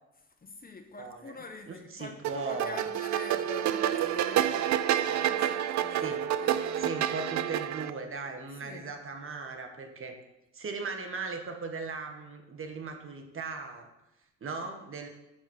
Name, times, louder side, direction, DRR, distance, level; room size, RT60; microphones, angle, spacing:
voice 1, 0.4-7.1 8.6-8.9, left 4 dB, 30° left, 5 dB, 1.0 m, -46 dB
voice 2, 1.0-1.3 1.7-2.8 6.0-6.2 6.8-10.1 10.5-13.9 14.4-15.1, right 4 dB, 45° right, 4 dB, 1.5 m, -38 dB
sound 1, 2.2-7.9, right 11 dB, 65° right, 0.5 m, -29 dB
9.3 x 4.3 x 6.3 m, 0.93 s
cardioid pair, 90°, 30 cm